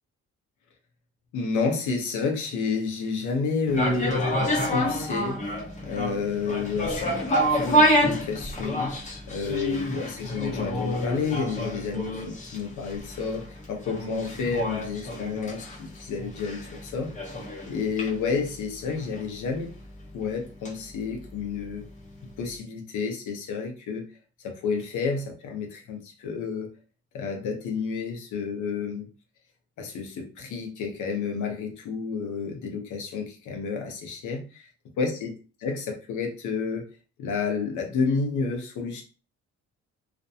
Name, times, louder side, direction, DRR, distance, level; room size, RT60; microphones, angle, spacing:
voice 1, 1.3-4.4 4.7-5.5 5.8-7.1 7.4-9.0 9.3-17.3 17.7-19.7 20.1-21.8 22.4-24.0 24.4-26.7 27.1-29.1 29.8-34.7 35.0-35.3 35.6-36.9 37.2-39.0, left 5 dB, 75° left, 0.8 m, -30 dB
sound 1, 3.7-21.8 22.1-22.2, equal, 25° left, 0.8 m, -28 dB
2.5 x 2.1 x 2.7 m
cardioid pair, 90°, 30 cm